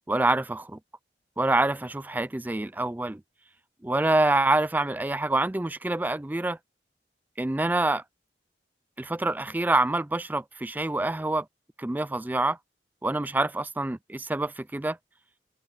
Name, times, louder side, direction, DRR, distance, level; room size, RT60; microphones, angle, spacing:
voice 1, 0.1-0.8 1.4-3.2 3.8-6.6 7.4-8.0 9.0-11.5 11.8-12.6 13.0-15.0, right 2 dB, 10° right, 0.3 m, -26 dB
open air
head